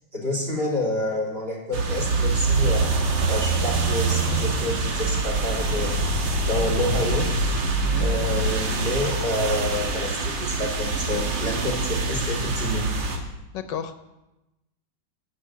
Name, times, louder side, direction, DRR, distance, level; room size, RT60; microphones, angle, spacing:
voice 1, 0.1-2.9 3.3-7.3 8.0-13.1, left 1 dB, 30° right, -2 dB, 3.0 m, -28 dB
sound 1, 1.7-13.2, right 3 dB, 80° right, 2.1 m, -24 dB
voice 2, 13.2-14.0, left 8 dB, 75° left, 9 dB, 1.4 m, -34 dB
12.0 x 6.1 x 8.2 m, 0.97 s
omnidirectional pair, 2.0 m